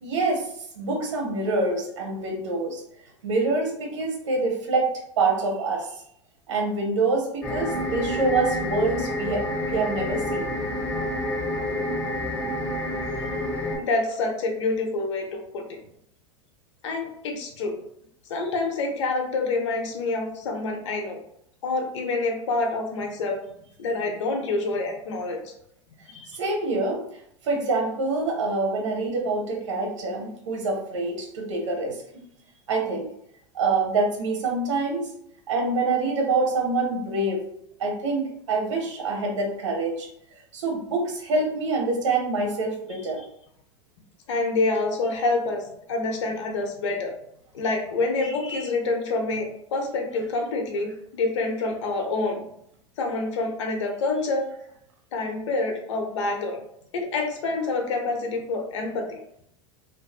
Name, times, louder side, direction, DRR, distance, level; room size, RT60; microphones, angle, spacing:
voice 1, 0.0-0.5 0.7-2.8 3.2-4.9 5.2-5.9 6.5-10.6 26.4-27.0 27.4-32.0 32.7-33.1 33.5-35.1 35.5-37.4 37.8-40.1 40.5-43.2, right 3 dB, 80° right, 1 dB, 0.8 m, -26 dB
sound 1, 7.4-13.8, left 1 dB, 10° left, 1.1 m, -28 dB
voice 2, 13.9-15.8 16.8-17.7 18.3-21.2 21.6-23.4 23.8-25.5 26.1-26.4 44.3-47.1 47.5-52.4 53.0-54.5 55.1-56.6 56.9-59.2, left 3 dB, 75° left, 2 dB, 0.7 m, -27 dB
2.5 x 2.5 x 2.3 m, 0.71 s
hypercardioid pair, 95°, 16 cm